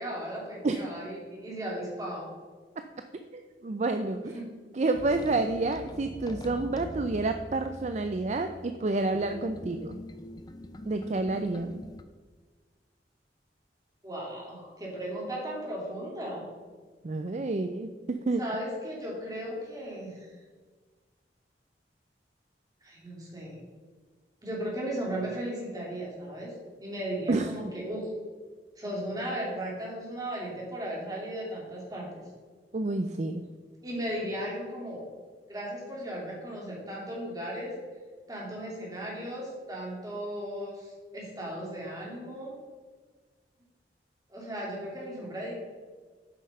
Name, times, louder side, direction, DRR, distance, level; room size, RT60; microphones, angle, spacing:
voice 1, 0.0-2.3 4.3-4.5 14.0-16.5 18.4-20.3 22.8-23.6 24.4-26.5 26.8-28.1 28.8-32.1 33.8-35.0 35.5-37.7 38.3-42.6 44.3-45.5, right 1 dB, 20° right, -4 dB, 2.8 m, -36 dB
voice 2, 3.3-4.4 4.7-10.0 10.9-11.8 17.0-18.4 27.3-27.7 32.7-33.4, right 2 dB, 40° right, 7 dB, 0.4 m, -29 dB
sound 1, 4.9-12.0, left 1 dB, 25° left, 0.5 m, -44 dB
8.4 x 5.7 x 5.4 m, 1.4 s
head